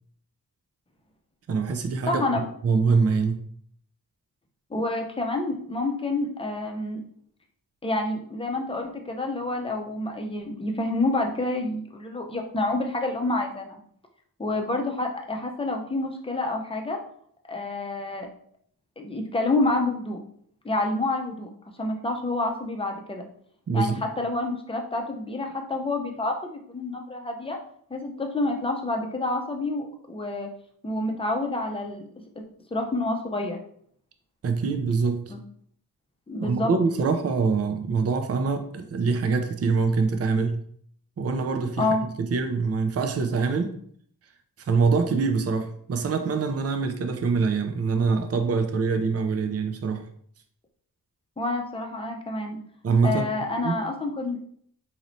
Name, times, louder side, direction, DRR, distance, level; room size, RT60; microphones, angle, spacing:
voice 1, 1.5-3.4 23.7-24.0 34.4-35.3 36.4-40.6 41.2-41.9 42.2-43.7 44.6-50.1 52.8-53.2 53.6-53.8, right 4 dB, 40° right, 7 dB, 0.5 m, -24 dB
voice 2, 2.1-2.4 4.7-7.0 7.8-13.8 14.4-17.0 17.5-18.3 19.0-20.2 20.6-21.5 21.8-23.2 23.7-27.6 27.9-30.5 30.8-32.1 32.4-32.5 32.7-33.6 35.3-35.4 36.3-36.7 41.8-42.1 51.4-52.6 53.0-54.4, left 2 dB, 15° left, 2 dB, 0.6 m, -28 dB
4.1 x 3.1 x 2.6 m, 0.63 s
wide cardioid pair, 95°, 38 cm